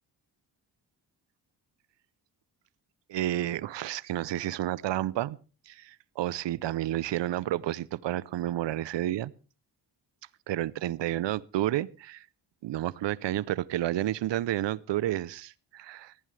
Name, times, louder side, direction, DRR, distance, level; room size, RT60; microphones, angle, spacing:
voice 1, 3.1-5.4 5.7-9.3 10.5-12.3 12.6-16.1, right 13 dB, 90° right, 0.7 m, -30 dB
19.0 x 15.0 x 3.3 m
wide cardioid pair, 155°, 42 cm